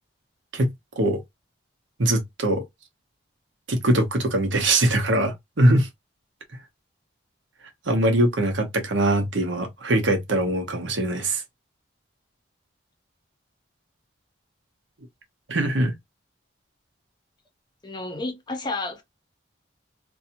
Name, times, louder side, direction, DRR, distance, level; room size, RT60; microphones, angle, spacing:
voice 1, 0.5-1.2 2.0-2.6 3.7-5.9 7.9-11.4 15.5-15.9, right 1 dB, 75° right, 0.8 m, -22 dB
voice 2, 17.8-19.0, left 2 dB, 20° left, 0.7 m, -31 dB
2.6 x 2.3 x 2.7 m
head